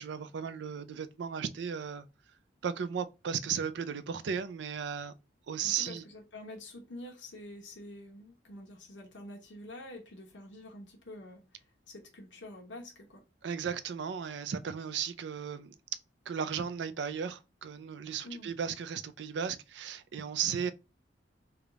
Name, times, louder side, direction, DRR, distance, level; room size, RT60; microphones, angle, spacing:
voice 1, 0.0-2.1 2.6-5.1 5.5-6.0 13.4-15.8 16.3-20.7, right 7 dB, 70° right, 0.4 m, -35 dB
voice 2, 5.6-13.2 18.2-18.5, left 1 dB, 80° left, 0.9 m, -47 dB
3.4 x 2.3 x 3.8 m
head